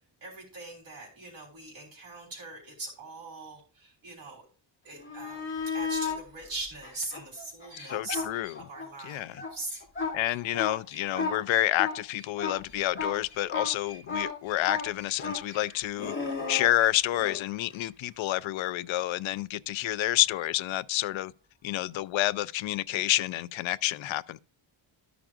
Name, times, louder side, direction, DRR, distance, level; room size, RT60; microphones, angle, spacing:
voice 1, 0.2-4.4 4.8-9.8, right 2 dB, 45° right, 3.5 m, -41 dB
sound 1, 5.0-6.2 6.8-8.9 9.2-17.4 20.2-20.3, left 4 dB, 25° left, 2.5 m, -34 dB
voice 2, 7.9-8.6 9.0-9.4 10.1-16.1 16.5-21.3 21.6-24.4, left 15 dB, 75° left, 0.5 m, -29 dB
13.0 x 6.0 x 2.4 m
wide cardioid pair, 175°, 47 cm